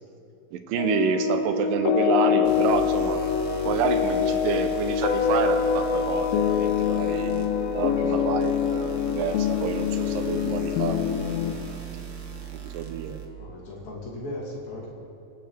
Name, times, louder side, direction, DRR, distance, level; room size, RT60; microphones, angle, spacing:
voice 1, 0.5-3.2 3.6-11.2 12.6-13.2, right 7 dB, 80° right, 7 dB, 2.5 m, -28 dB
sound 1, 0.8-11.5, left 8 dB, 85° left, 2.5 m, -25 dB
Organ, 1.6-12.4, left 7 dB, 70° left, 2.3 m, -47 dB
sound 2, 2.4-13.3, right 9 dB, 55° right, 1.3 m, -39 dB
voice 2, 7.8-8.1 10.8-11.0 13.4-14.9, left 1 dB, 55° left, -6 dB, 4.2 m, -38 dB
26.0 x 12.5 x 3.4 m, 2.7 s
omnidirectional pair, 4.0 m